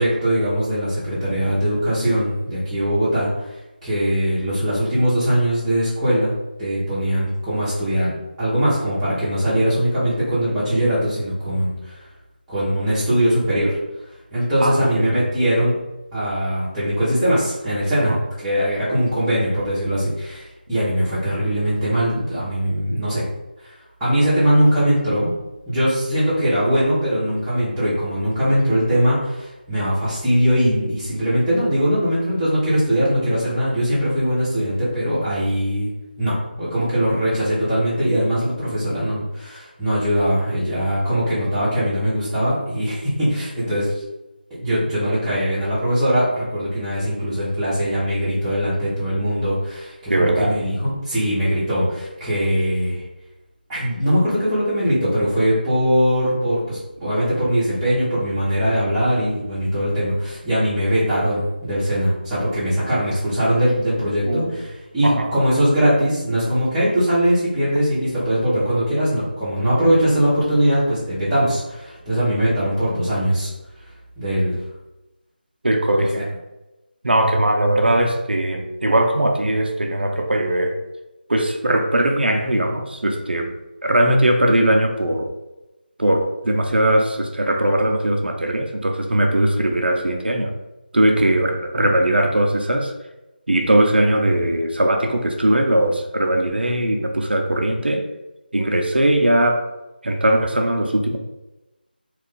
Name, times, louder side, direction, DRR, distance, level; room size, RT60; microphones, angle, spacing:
voice 1, 0.0-3.3 3.8-6.3 6.6-8.1 8.4-12.0 12.5-13.8 14.3-15.7 16.1-23.2 23.6-23.7 24.0-25.3 25.7-35.9 36.2-43.9 44.5-53.0 53.7-73.5 74.2-74.6, equal, 5° right, -13 dB, 0.8 m, -21 dB
voice 2, 14.6-15.3 18.0-18.2 50.1-50.6 64.2-64.6 65.0-65.3 75.6-76.2 77.0-80.8 81.3-83.5 83.8-85.3 86.0-90.5 90.9-92.9 93.5-98.0 98.5-99.7 100.0-101.2, right 1 dB, 75° right, 3 dB, 0.5 m, -19 dB
2.5 x 2.4 x 3.7 m, 1.0 s
figure-of-eight pair, 165°, 6 cm